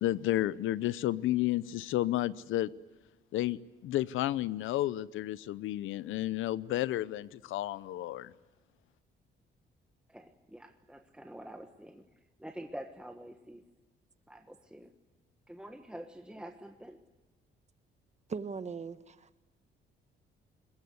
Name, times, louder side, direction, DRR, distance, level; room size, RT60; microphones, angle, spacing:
voice 1, 0.0-2.7 3.3-8.3, left 14 dB, 85° left, 18 dB, 0.7 m, -31 dB
voice 2, 10.1-12.1 12.4-13.6 14.3-14.9 15.5-17.0, right 1 dB, 5° right, 5 dB, 1.3 m, -47 dB
voice 3, 18.3-19.4, right 5 dB, 35° right, 12 dB, 1.3 m, -39 dB
22.0 x 20.5 x 9.6 m, 1.1 s
cardioid pair, 90°, 20 cm